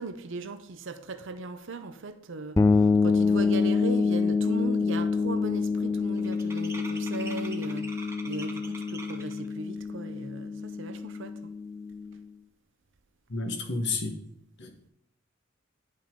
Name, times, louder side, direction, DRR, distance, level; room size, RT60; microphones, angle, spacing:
voice 1, 0.0-11.3, right 3 dB, 65° right, 0.7 m, -38 dB
sound 1, 2.6-12.2, left 4 dB, 15° left, 0.4 m, -27 dB
sound 2, 4.4-4.6 4.8-9.5, right 2 dB, 15° right, 0.9 m, -45 dB
voice 2, 13.3-14.2 14.6-14.9, left 3 dB, 60° left, 1.3 m, -31 dB
10.5 x 5.4 x 3.8 m
head